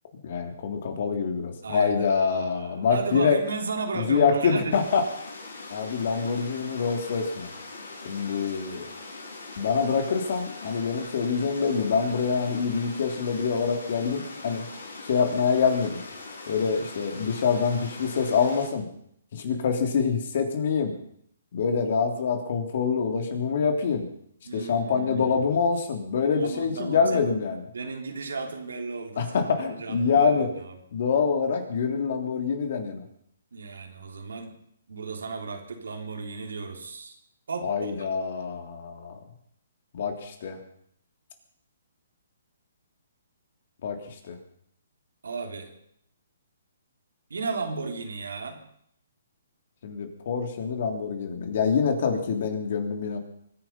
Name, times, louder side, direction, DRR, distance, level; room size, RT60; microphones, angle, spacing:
voice 1, 0.2-3.4 3.9-5.0 5.7-7.5 8.0-8.8 9.6-14.7 15.0-16.0 16.5-18.9 19.3-20.9 21.5-24.1 24.5-27.6 29.2-30.5 30.9-33.0 37.6-39.2 39.9-40.6 43.8-44.4 49.8-53.2, left 5 dB, 55° left, 5 dB, 3.3 m, -25 dB
voice 2, 1.6-4.8 24.4-25.6 26.4-27.2 27.7-29.3 29.7-30.4 30.6-30.8 33.5-34.5 34.9-37.2 37.5-38.1 45.2-45.7 47.3-48.6, right 4 dB, 80° right, 3 dB, 3.5 m, -34 dB
sound 1, 4.7-18.7, left 3 dB, 85° left, 6.6 m, -42 dB
23.5 x 10.5 x 5.6 m, 0.69 s
hypercardioid pair, 145°, 0 cm